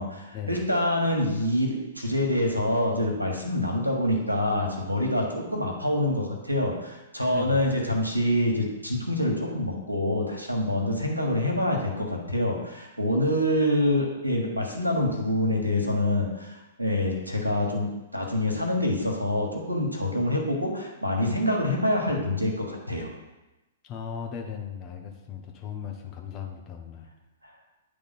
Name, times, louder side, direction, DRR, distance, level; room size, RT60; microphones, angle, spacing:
voice 1, 0.0-16.5 16.8-23.1, left 1 dB, 85° right, 1 dB, 1.4 m, -26 dB
voice 2, 7.3-7.7 23.8-27.1, left 7 dB, 30° left, 2 dB, 1.0 m, -37 dB
9.9 x 3.3 x 4.2 m, 1.1 s
figure-of-eight pair, 110°, 0 cm